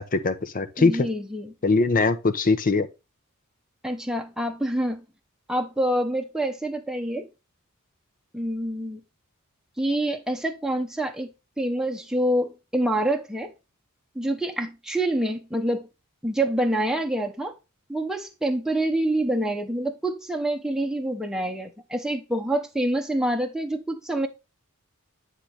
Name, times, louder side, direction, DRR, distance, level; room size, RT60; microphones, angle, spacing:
voice 1, 0.0-1.1 1.6-2.9, left 3 dB, 40° left, 0.7 m, -22 dB
voice 2, 0.8-1.5 3.8-5.0 5.5-7.3 8.3-9.0 9.8-11.3 11.6-13.5 14.1-15.9 16.2-17.5 17.9-24.3, right 1 dB, 5° right, 0.8 m, -26 dB
9.7 x 3.8 x 3.2 m
head